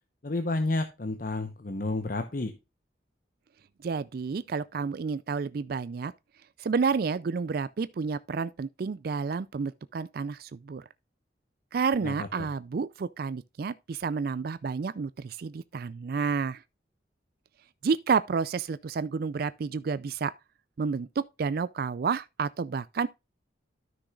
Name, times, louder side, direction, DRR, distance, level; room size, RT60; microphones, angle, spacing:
voice 1, 0.2-2.5 12.0-12.5, left 2 dB, 45° left, 0.8 m, -31 dB
voice 2, 3.8-6.1 6.6-10.8 11.7-16.6 17.8-20.3 20.8-23.1, right 5 dB, 50° right, 0.4 m, -30 dB
13.0 x 6.2 x 2.4 m
head